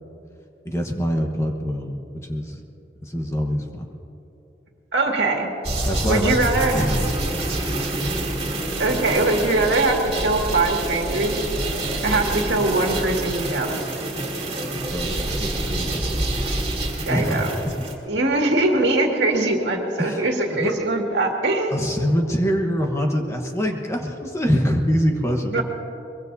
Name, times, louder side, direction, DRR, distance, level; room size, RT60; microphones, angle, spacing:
voice 1, 0.6-2.6 3.0-3.9 5.9-7.4 14.9-16.6 17.1-17.5 20.0-20.2 20.6-20.7 21.7-25.6, equal, 15° left, 2 dB, 1.2 m, -25 dB
voice 2, 4.9-5.5 6.1-6.9 8.5-11.4 12.0-13.8 17.1-17.6 18.1-21.7 25.5-25.6, right 2 dB, 70° right, 1 dB, 2.1 m, -22 dB
sound 1, 5.6-17.9, right 1 dB, 35° right, 2.9 m, -27 dB
23.0 x 23.0 x 2.7 m, 3.0 s
head